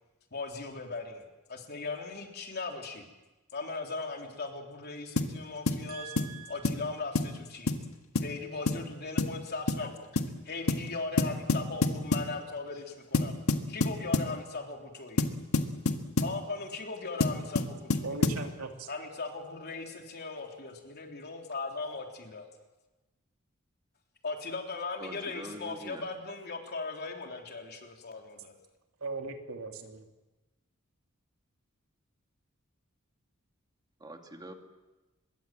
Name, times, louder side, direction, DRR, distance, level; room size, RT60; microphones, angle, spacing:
voice 1, 0.3-3.1 3.5-6.1 6.5-7.7 8.2-13.3 13.7-15.3 16.2-18.2 18.9-22.5 24.2-28.5, left 3 dB, 50° left, 2 dB, 3.5 m, -38 dB
sound 1, 5.2-5.4 5.7-5.8 6.2-6.4 6.6-6.8 7.2-7.4 7.7-7.8 8.2-8.3 8.7-8.9 9.2-9.4 9.7-9.9 10.2-10.3 10.7-10.9 11.2-12.3 13.1-14.3 15.2-16.4 17.2-18.5, left 2 dB, 80° left, 1.8 m, -28 dB
voice 2, 5.9-6.6 18.0-18.9 29.0-30.1, right 3 dB, 85° right, 4 dB, 2.8 m, -39 dB
voice 3, 25.0-26.0 34.0-34.5, right 1 dB, 20° right, 4 dB, 2.5 m, -44 dB
25.5 x 22.5 x 7.7 m, 1.1 s
head